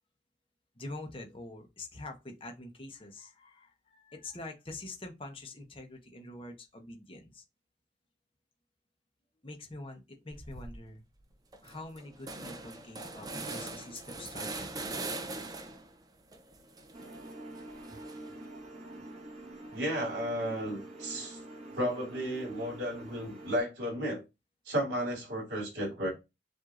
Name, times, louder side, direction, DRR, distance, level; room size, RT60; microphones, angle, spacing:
voice 1, 0.8-7.4 9.4-11.0 11.6-14.9 17.9-18.0, left 2 dB, 30° left, 0.9 m, -45 dB
sound 1, 10.3-10.8 11.2-11.3 11.5-15.9 16.3-18.4, right 3 dB, 20° right, 0.5 m, -42 dB
sound 2, 16.9-23.6, right 1 dB, 35° right, 1.4 m, -46 dB
voice 2, 19.7-21.4 21.7-24.2 24.7-26.1, equal, 70° right, 2.9 m, -33 dB
7.5 x 2.7 x 2.4 m
head